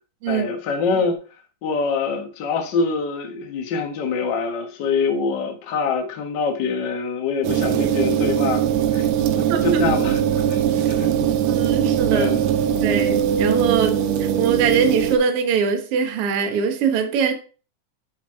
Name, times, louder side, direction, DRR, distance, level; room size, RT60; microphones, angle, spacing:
voice 1, 0.3-1.2 1.6-8.7 8.9-11.3 12.1-12.4, left 5 dB, 75° left, 1.0 m, -25 dB
sound 1, 7.4-15.2, right 9 dB, 85° right, 1.6 m, -21 dB
voice 2, 9.5-9.8 11.5-12.3 12.8-17.3, right 6 dB, 60° right, 1.6 m, -22 dB
9.0 x 4.6 x 3.5 m
omnidirectional pair, 3.8 m